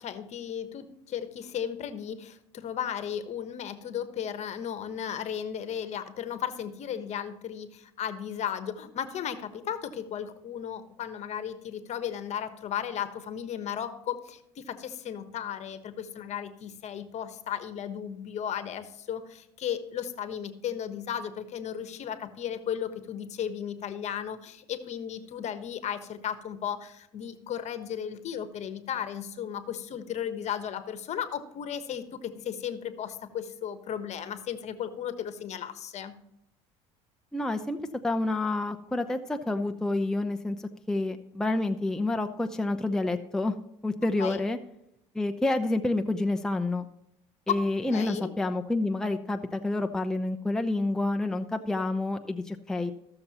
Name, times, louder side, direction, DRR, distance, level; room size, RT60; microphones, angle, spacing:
voice 1, 0.0-36.1 44.2-44.4 47.5-47.6 47.9-48.3, left 9 dB, 50° left, 11 dB, 1.1 m, -35 dB
voice 2, 37.3-37.8 38.0-40.6 40.9-43.5 43.8-44.6 45.1-46.9 47.5-52.9, left 2 dB, 5° left, 5 dB, 0.6 m, -28 dB
14.5 x 6.8 x 2.9 m, 0.79 s
supercardioid pair, 90°, 15 cm